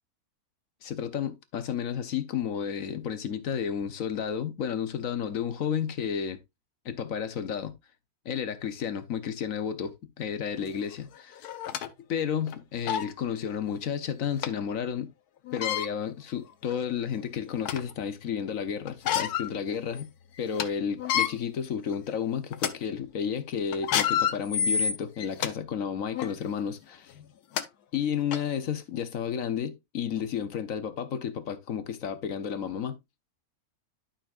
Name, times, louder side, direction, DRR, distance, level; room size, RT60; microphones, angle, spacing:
voice 1, 0.8-6.4 6.8-7.7 8.2-11.5 12.1-15.1 15.5-20.1 20.4-27.1 27.9-33.0, left 8 dB, 65° left, 1.3 m, -32 dB
sound 1, 10.7-10.8 11.4-11.9 12.5-12.6 12.9-13.1 14.4-14.5 15.5-15.9 16.6-16.7 17.2-17.9 18.9-19.5 19.9-20.0 20.4-20.6 21.0-21.3 21.9-22.1 22.5-22.7 23.7-25.5 26.1-26.3 27.2-27.3 27.6-27.7 28.3-28.4, left 9 dB, 85° left, 1.3 m, -28 dB
11.5 x 5.7 x 2.5 m
omnidirectional pair, 1.6 m